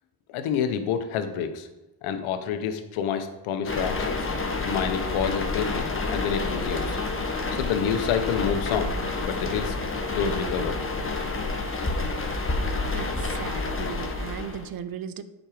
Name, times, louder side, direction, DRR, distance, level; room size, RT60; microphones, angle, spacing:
voice 1, 0.3-1.7 2.0-4.3 4.6-7.0 7.5-9.8 10.1-10.8, left 7 dB, 85° left, 9 dB, 1.0 m, -28 dB
sound 1, 3.6-14.7, left 3 dB, 25° left, 1.7 m, -29 dB
voice 2, 12.9-15.2, right 8 dB, 45° right, 13 dB, 0.7 m, -36 dB
8.9 x 5.1 x 5.0 m, 1.0 s
supercardioid pair, 70°, 48 cm